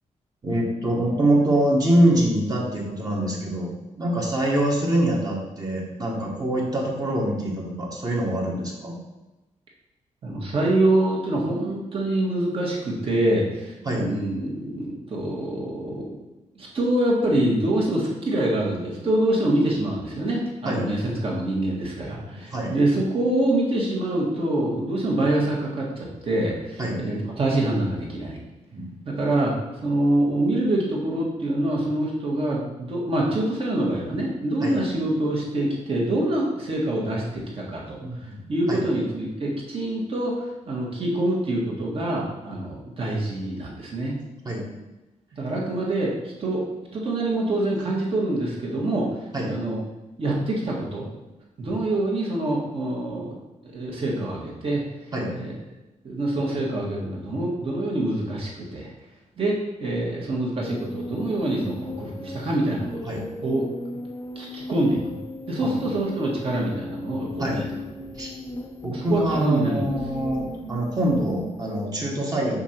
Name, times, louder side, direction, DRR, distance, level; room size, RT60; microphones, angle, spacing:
voice 1, 0.4-9.0 13.8-14.1 20.6-20.9 22.1-22.7 26.8-27.0 28.7-29.0 34.6-34.8 38.0-38.4 38.7-38.9 44.4-44.6 49.3-49.5 55.1-55.3 63.0-63.2 65.6-65.9 67.4-67.6 68.1-68.3 68.8-72.6, right 1 dB, 30° right, -2 dB, 1.4 m, -24 dB
voice 2, 10.2-16.1 16.6-28.4 29.0-29.5 29.8-38.0 38.5-40.3 40.7-44.2 45.3-46.1 46.4-46.6 46.9-49.1 49.4-49.8 50.2-51.1 51.6-53.3 53.6-54.8 55.3-55.5 56.0-58.9 59.4-63.6 64.4-65.2 65.5-67.6 68.9-69.9, right 1 dB, 50° right, -3 dB, 1.8 m, -25 dB
sound 1, 60.6-71.9, left 1 dB, 30° left, 0.8 m, -37 dB
5.8 x 5.3 x 4.5 m, 1.0 s
wide cardioid pair, 150°, 13 cm